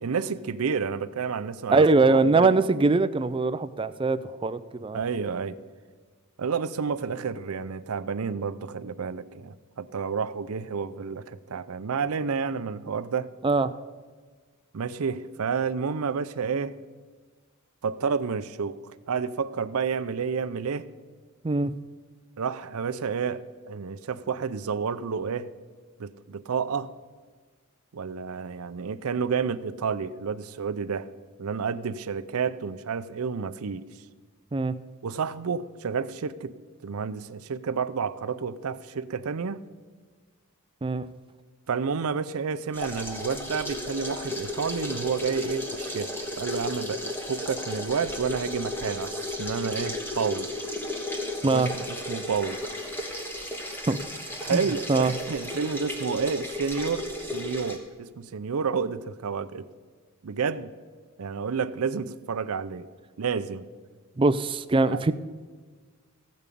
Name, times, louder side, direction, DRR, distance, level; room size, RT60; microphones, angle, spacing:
voice 1, 0.0-2.5 4.9-5.6 6.4-13.3 14.7-16.8 17.8-18.8 19.1-20.9 22.4-25.5 26.0-26.9 27.9-31.1 31.4-33.9 35.0-36.5 36.8-39.6 41.7-50.5 51.5-52.7 54.4-59.7 60.2-60.7 61.2-62.9 63.2-63.7 64.9-65.0, right 5 dB, 80° right, 13 dB, 0.5 m, -30 dB
voice 2, 1.7-5.0 13.4-13.7 21.4-21.7 34.5-34.7 40.8-41.1 51.4-51.7 53.9-54.0 54.5-54.6 54.9-55.1 64.2-65.1, right 3 dB, 25° right, 13 dB, 0.4 m, -22 dB
sound 1, 42.7-57.8, left 1 dB, 10° left, 1.3 m, -34 dB
15.0 x 5.3 x 8.4 m, 1.5 s
head